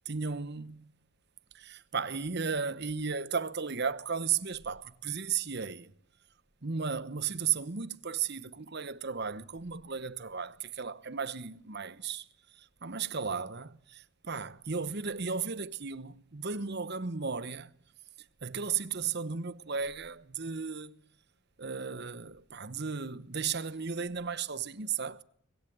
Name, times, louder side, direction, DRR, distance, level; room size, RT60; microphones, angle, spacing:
voice 1, 0.1-0.9 1.5-5.9 6.6-12.2 12.6-17.7 18.4-21.0 21.6-25.2, right 6 dB, 50° right, 1.0 m, -35 dB
25.0 x 21.0 x 9.3 m
head